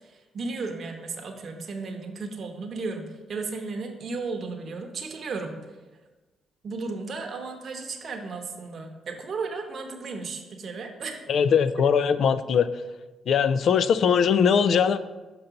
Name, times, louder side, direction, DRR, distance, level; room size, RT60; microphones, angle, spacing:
voice 1, 0.0-5.6 6.6-11.2, right 4 dB, 50° right, 3 dB, 0.8 m, -34 dB
voice 2, 11.3-12.7 13.3-15.0, left 7 dB, 60° left, 13 dB, 0.3 m, -21 dB
5.7 x 5.3 x 3.9 m, 1.2 s
cardioid pair, 90°, 0 cm